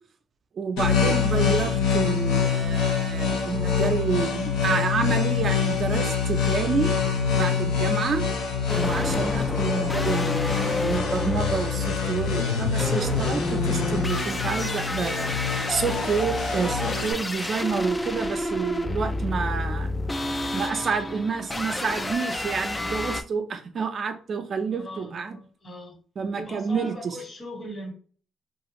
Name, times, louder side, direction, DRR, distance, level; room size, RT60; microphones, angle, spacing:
voice 1, 0.6-6.9 7.3-8.3 8.7-19.9 20.5-25.4 26.2-27.2, right 5 dB, 55° right, 7 dB, 0.4 m, -29 dB
sound 1, 0.8-17.1, left 6 dB, 85° left, 0.6 m, -25 dB
sound 2, 8.7-23.2, left 2 dB, 20° left, 0.3 m, -30 dB
voice 2, 24.7-26.0 26.4-27.9, left 1 dB, 40° left, 1 dB, 1.4 m, -39 dB
2.4 x 2.3 x 2.9 m, 0.42 s
supercardioid pair, 65°, 0 cm